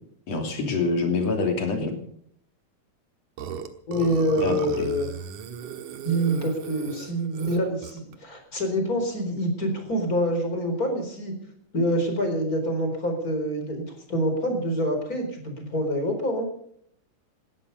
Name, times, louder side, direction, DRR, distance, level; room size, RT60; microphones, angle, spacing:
voice 1, 0.3-2.0 4.4-4.9, left 3 dB, 55° left, 4 dB, 4.0 m, -26 dB
Burping eructation, 3.4-8.1, right 8 dB, 75° right, 2.7 m, -37 dB
voice 2, 3.9-5.1 6.0-11.3 11.7-16.5, equal, 25° left, 5 dB, 4.5 m, -26 dB
19.5 x 13.0 x 5.4 m, 0.68 s
omnidirectional pair, 3.7 m